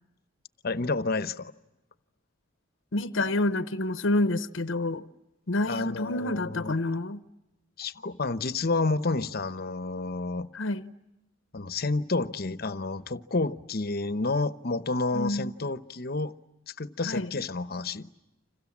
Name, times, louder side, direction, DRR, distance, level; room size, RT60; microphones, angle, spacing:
voice 1, 0.6-1.5 5.7-6.7 7.8-10.5 11.5-16.3 16.7-18.1, left 3 dB, 50° left, 1.0 m, -30 dB
voice 2, 2.9-5.0 5.5-7.2 10.5-10.9 15.1-15.5 17.0-17.3, left 2 dB, 70° left, 0.9 m, -28 dB
29.5 x 27.0 x 7.3 m
head